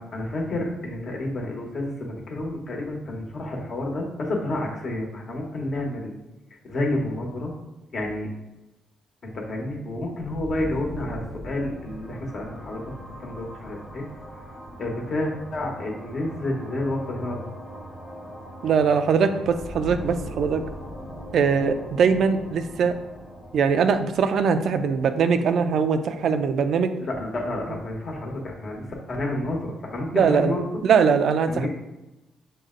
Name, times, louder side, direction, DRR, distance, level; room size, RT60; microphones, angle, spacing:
voice 1, 0.0-6.1 6.7-7.5 7.9-8.3 9.2-14.0 14.8-17.4 27.0-30.8 31.5-31.7, left 1 dB, 50° left, 0 dB, 1.1 m, -30 dB
sound 1, 10.3-27.8, equal, 15° left, 1.1 m, -40 dB
voice 2, 18.6-20.6 21.3-23.0 23.5-26.9 30.1-31.7, right 6 dB, 65° right, 9 dB, 0.4 m, -21 dB
6.5 x 2.2 x 3.7 m, 1.0 s
cardioid pair, 90°, 0 cm